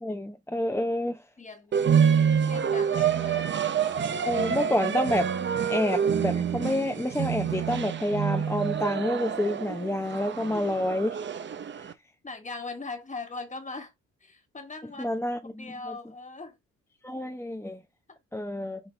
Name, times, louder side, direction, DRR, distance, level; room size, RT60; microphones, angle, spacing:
voice 1, 0.0-1.2 4.3-5.3 5.7-11.2 15.0-15.9 17.0-17.8 18.3-18.8, left 1 dB, 10° left, 0.7 m, -28 dB
voice 2, 1.4-1.8 2.4-3.5 10.5-10.6 12.2-13.9 14.2-15.1 15.4-16.6 18.1-18.2, left 3 dB, 25° left, 1.4 m, -40 dB
sound 1, 1.7-11.9, right 7 dB, 40° right, 0.7 m, -27 dB
6.1 x 2.6 x 3.2 m
cardioid pair, 90°, 30 cm